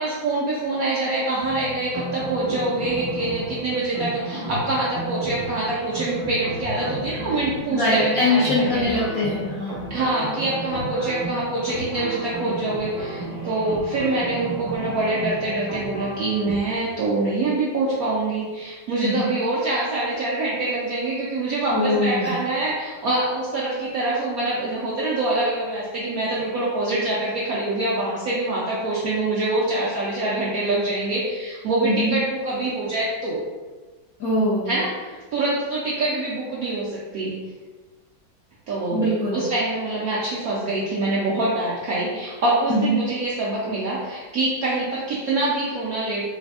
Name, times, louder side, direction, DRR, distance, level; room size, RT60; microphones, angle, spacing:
voice 1, 0.0-9.0 9.9-33.4 34.7-34.9 35.3-37.3 38.7-46.2, right 2 dB, 75° right, -6 dB, 0.8 m, -25 dB
sound 1, 1.4-16.8, equal, 35° right, 0.5 m, -33 dB
voice 2, 7.7-9.8 19.0-19.3 21.7-22.3 31.8-32.1 34.2-34.7 38.9-39.4 42.7-42.9, left 1 dB, 75° left, -8 dB, 0.8 m, -22 dB
3.2 x 2.6 x 2.3 m, 1.3 s
omnidirectional pair, 2.0 m